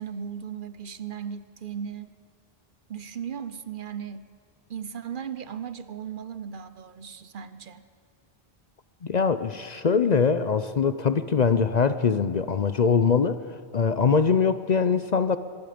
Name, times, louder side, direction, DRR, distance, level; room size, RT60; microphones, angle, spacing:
voice 1, 0.0-2.1 2.9-4.3 4.7-7.8, right 8 dB, 55° right, 13 dB, 0.9 m, -36 dB
voice 2, 9.0-13.4 13.7-15.4, left 5 dB, 50° left, 12 dB, 0.7 m, -22 dB
25.5 x 20.0 x 5.1 m, 2.2 s
omnidirectional pair, 1.1 m